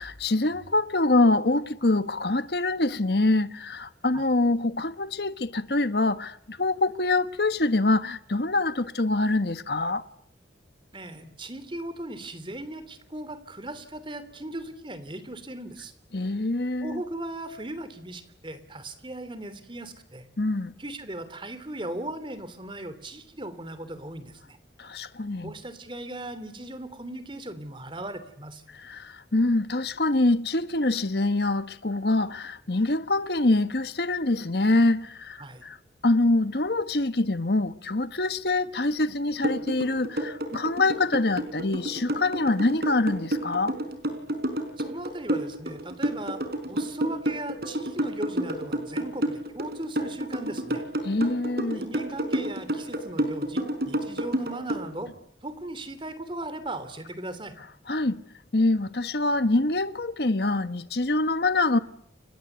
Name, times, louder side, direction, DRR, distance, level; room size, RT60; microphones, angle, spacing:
voice 1, 0.0-10.0 16.1-17.0 20.4-20.7 24.8-25.5 28.7-35.8 36.0-43.7 51.0-51.8 57.9-58.2 58.5-61.8, left 2 dB, 60° left, 1.3 m, -25 dB
voice 2, 10.9-15.9 16.8-20.3 20.8-24.6 25.4-28.6 35.4-35.6 44.8-50.8 51.7-55.1 55.4-57.5, right 1 dB, 25° right, 3.2 m, -38 dB
sound 1, 39.4-54.8, right 1 dB, 55° right, 5.2 m, -29 dB
30.0 x 24.0 x 8.1 m
head